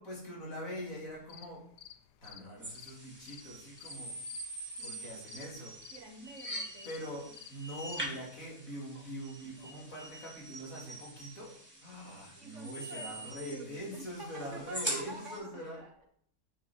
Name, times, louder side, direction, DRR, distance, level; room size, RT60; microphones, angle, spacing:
voice 1, 0.0-1.6 2.2-4.2 4.8-5.8 6.8-11.5 11.8-15.8, equal, 55° left, -3 dB, 3.4 m, -43 dB
sound 1, 1.1-8.1, left 11 dB, 80° left, 1.2 m, -53 dB
sound 2, 2.6-15.4, right 1 dB, 5° right, 3.9 m, -44 dB
voice 2, 4.8-5.4 5.9-7.3 9.7-9.9 12.0-13.2 13.4-15.9, right 3 dB, 50° right, 3 dB, 1.3 m, -49 dB
7.0 x 6.3 x 6.3 m, 0.62 s
omnidirectional pair, 1.7 m